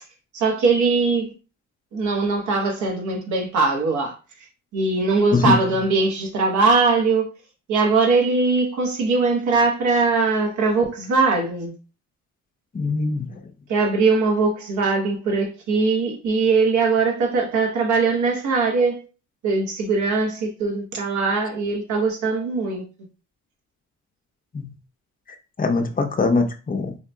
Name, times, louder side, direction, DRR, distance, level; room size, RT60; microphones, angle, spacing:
voice 1, 0.3-1.3 1.9-4.1 4.7-7.3 7.7-11.7 13.7-19.0 19.4-22.8, right 4 dB, 70° right, 1.1 m, -21 dB
voice 2, 12.7-13.4 24.5-24.7 25.6-27.0, left 3 dB, 30° left, 0.7 m, -22 dB
4.6 x 2.7 x 2.2 m
cardioid pair, 90°, 30 cm